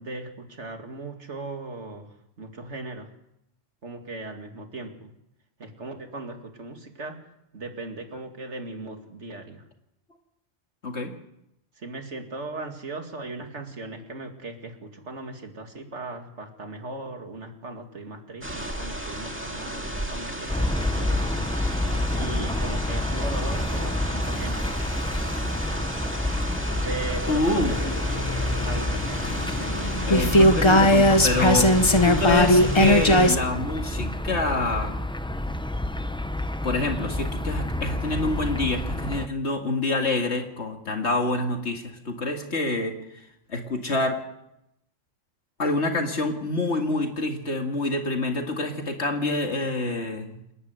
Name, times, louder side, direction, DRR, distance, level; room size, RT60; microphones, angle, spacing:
voice 1, 0.0-2.1 2.4-3.1 3.8-5.1 5.6-7.2 7.5-9.6 11.8-21.5 22.1-24.7 26.8-28.0 28.6-29.0, right 2 dB, 65° right, 4 dB, 2.6 m, -38 dB
sound 1, 18.4-33.3, right 1 dB, 10° right, 2.1 m, -34 dB
sound 2, 20.5-39.3, left 1 dB, 5° left, 0.4 m, -29 dB
voice 2, 27.3-27.7 30.0-35.0 36.6-42.9 43.5-44.2 45.6-50.4, left 2 dB, 60° left, 3 dB, 2.4 m, -27 dB
sound 3, 27.7-33.4, left 1 dB, 25° left, 0.9 m, -20 dB
28.5 x 11.0 x 8.2 m, 0.82 s
omnidirectional pair, 1.3 m